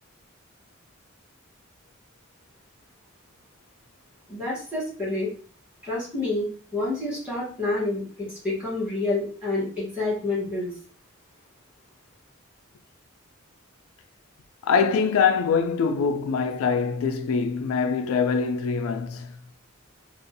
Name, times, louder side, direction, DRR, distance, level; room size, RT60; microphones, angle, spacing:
voice 1, 4.3-5.3 5.8-10.7, left 2 dB, 5° right, 1.3 m, -28 dB
voice 2, 14.6-19.4, left 5 dB, 85° left, 0.3 m, -24 dB
2.6 x 2.3 x 2.6 m
head